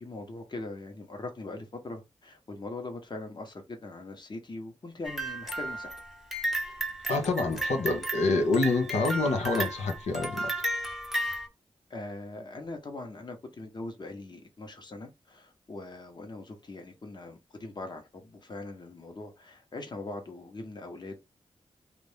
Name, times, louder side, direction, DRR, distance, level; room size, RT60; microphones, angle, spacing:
voice 1, 0.0-5.9 11.9-21.2, left 2 dB, 40° left, 1.0 m, -41 dB
sound 1, 5.0-11.5, right 1 dB, ahead, 0.8 m, -34 dB
voice 2, 7.1-10.5, left 3 dB, 90° left, 0.7 m, -27 dB
2.7 x 2.4 x 3.3 m
cardioid pair, 75°, 11 cm